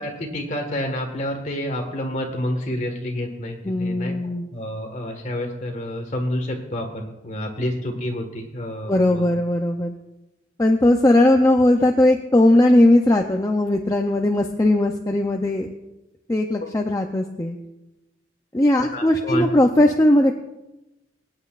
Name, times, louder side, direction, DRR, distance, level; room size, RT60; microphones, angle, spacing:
voice 1, 0.0-4.1 4.5-9.2 18.9-19.4, left 1 dB, 35° left, 2 dB, 1.5 m, -29 dB
voice 2, 3.6-4.5 8.9-9.9 10.6-15.7 16.3-17.6 18.5-20.3, left 1 dB, 15° left, 3 dB, 0.5 m, -18 dB
24.5 x 8.7 x 2.4 m, 0.98 s
head